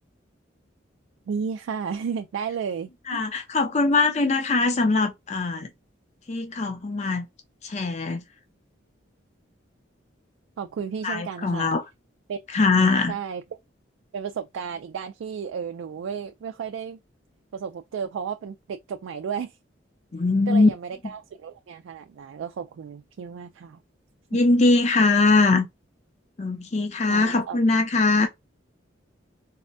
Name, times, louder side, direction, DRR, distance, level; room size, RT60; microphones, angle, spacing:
voice 1, 1.3-3.2 10.6-11.7 12.3-12.4 13.1-13.4 14.1-17.0 17.5-19.6 20.5-23.8 27.1-27.6, right 6 dB, 90° right, 0.3 m, -33 dB
voice 2, 3.1-5.7 6.3-7.3 7.6-8.2 11.0-11.8 12.5-13.2 20.1-20.7 24.3-25.7 26.4-28.3, left 3 dB, 35° left, 0.5 m, -21 dB
4.2 x 2.1 x 2.5 m
head